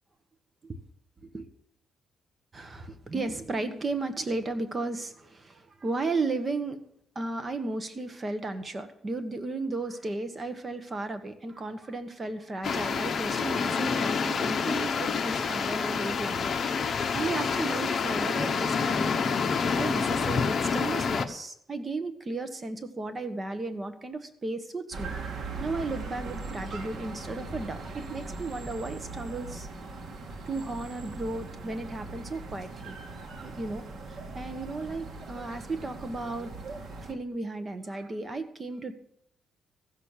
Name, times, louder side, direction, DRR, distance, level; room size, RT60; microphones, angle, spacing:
voice 1, 2.5-6.9 7.1-16.5 16.9-19.2 19.7-25.1 25.6-29.7 30.5-33.0 33.4-36.5 36.8-38.9, right 3 dB, 25° right, 8 dB, 1.3 m, -34 dB
sound 1, 12.6-21.2, left 5 dB, 45° left, 0.9 m, -28 dB
sound 2, 24.9-37.1, right 3 dB, 55° right, 1.8 m, -40 dB
14.5 x 6.5 x 7.3 m, 0.74 s
cardioid pair, 120°, 0 cm